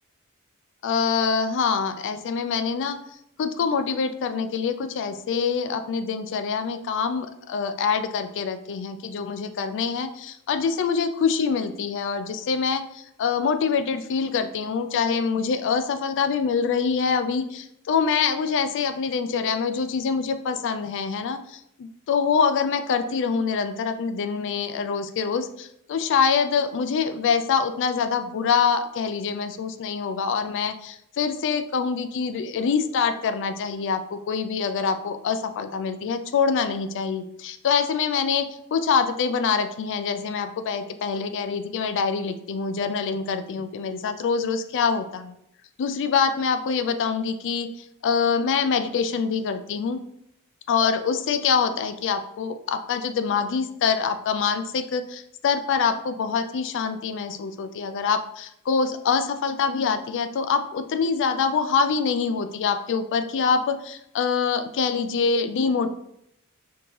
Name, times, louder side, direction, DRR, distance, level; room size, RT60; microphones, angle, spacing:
voice 1, 0.8-3.0 3.4-38.4 38.7-45.3 45.8-47.7 48.0-50.0 50.7-65.9, left 5 dB, 55° left, 9 dB, 0.4 m, -25 dB
4.3 x 2.8 x 3.2 m, 0.75 s
head